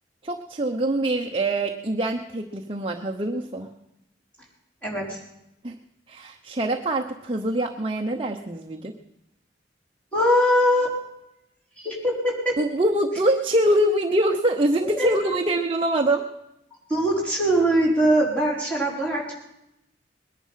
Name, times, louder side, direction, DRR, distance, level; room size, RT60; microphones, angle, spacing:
voice 1, 0.2-3.7 5.6-5.8 6.1-8.9 12.6-16.2, right 1 dB, 30° right, 2 dB, 0.8 m, -24 dB
voice 2, 4.8-5.2 10.1-11.0 11.8-12.6 14.8-15.4 16.9-19.3, equal, 5° left, -4 dB, 4.4 m, -22 dB
20.5 x 11.0 x 5.7 m, 0.85 s
head